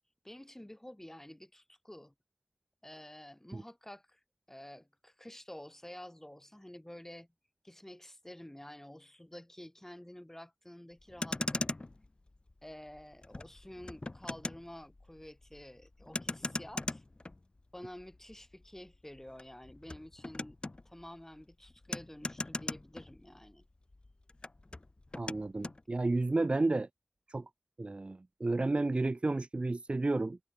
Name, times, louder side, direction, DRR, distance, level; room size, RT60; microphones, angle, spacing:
voice 1, 0.2-2.1 2.8-4.2 4.5-7.3 7.6-11.8 12.6-17.0 17.7-20.6 20.8-23.6, left 1 dB, 15° left, 6.4 m, -50 dB
Motor vehicle (road), 11.0-23.6 23.9-25.8, left 2 dB, 45° left, 0.5 m, -41 dB
voice 2, 25.2-26.9 27.3-27.4 27.8-30.4, right 2 dB, 55° right, 0.6 m, -31 dB
wide cardioid pair, 55°, 2 cm